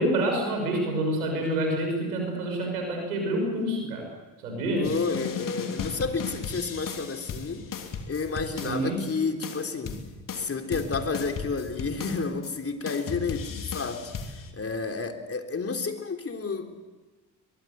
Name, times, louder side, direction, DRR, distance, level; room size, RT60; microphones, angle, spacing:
voice 1, 0.0-4.1 4.4-4.9 8.6-9.0, right 1 dB, 85° right, 3 dB, 6.2 m, -27 dB
sound 1, 4.8-9.1 9.4-12.6 12.9-14.5, left 6 dB, 45° left, 3.2 m, -36 dB
voice 2, 4.8-7.6 8.1-10.0 10.3-16.8, left 4 dB, 30° left, 4 dB, 3.5 m, -31 dB
23.0 x 22.5 x 8.1 m, 1.2 s
hypercardioid pair, 55°, 43 cm